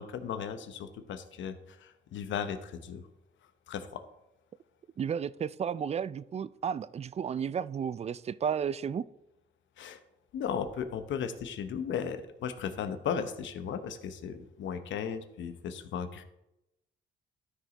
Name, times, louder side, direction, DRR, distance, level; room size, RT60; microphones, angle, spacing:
voice 1, 0.0-3.0 3.7-4.0 9.8-10.0 10.3-16.2, left 7 dB, 70° left, 9 dB, 0.9 m, -36 dB
voice 2, 5.0-9.0, right 7 dB, 35° right, 18 dB, 0.4 m, -33 dB
13.0 x 5.0 x 4.0 m, 0.89 s
cardioid pair, 90°, 20 cm